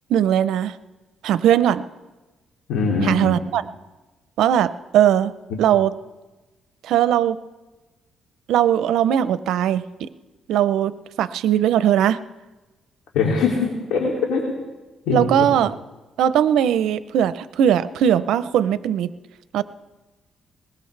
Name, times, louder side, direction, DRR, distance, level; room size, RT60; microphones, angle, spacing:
voice 1, 0.1-0.7 1.2-1.8 3.0-3.6 4.4-5.3 5.6-5.9 6.8-7.4 8.5-10.1 10.5-10.9 11.2-12.2 15.1-15.8 16.2-19.1 19.5-19.6, right 10 dB, 80° right, 14 dB, 0.6 m, -19 dB
voice 2, 2.7-3.3 13.1-14.4 15.1-15.5, left 4 dB, 85° left, -1 dB, 2.6 m, -22 dB
21.5 x 20.0 x 3.3 m, 1.2 s
cardioid pair, 90°, 0 cm